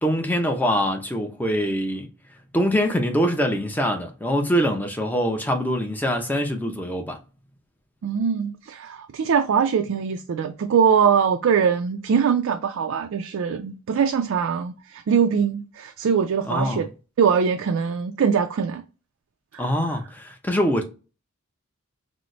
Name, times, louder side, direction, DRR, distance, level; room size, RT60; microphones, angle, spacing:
voice 1, 0.0-2.1 2.5-7.2 16.5-16.8 19.6-20.8, equal, 10° left, 0.5 m, -24 dB
voice 2, 8.0-16.9 17.2-18.8 19.5-19.6, right 7 dB, 65° right, 0.3 m, -22 dB
3.9 x 2.0 x 3.0 m
head